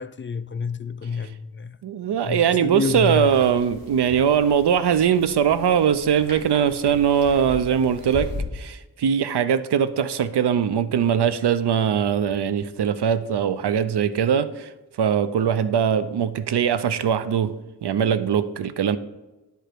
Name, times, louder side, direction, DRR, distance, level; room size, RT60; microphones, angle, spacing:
voice 1, 0.0-1.8 2.2-3.3, left 5 dB, 30° left, 0.4 m, -28 dB
voice 2, 1.8-14.7 15.0-17.5 17.8-19.0, right 8 dB, 75° right, 0.6 m, -21 dB
sound 1, 2.8-8.4, left 1 dB, 60° right, 2.0 m, -38 dB
10.5 x 5.0 x 4.5 m
wide cardioid pair, 85°, 41 cm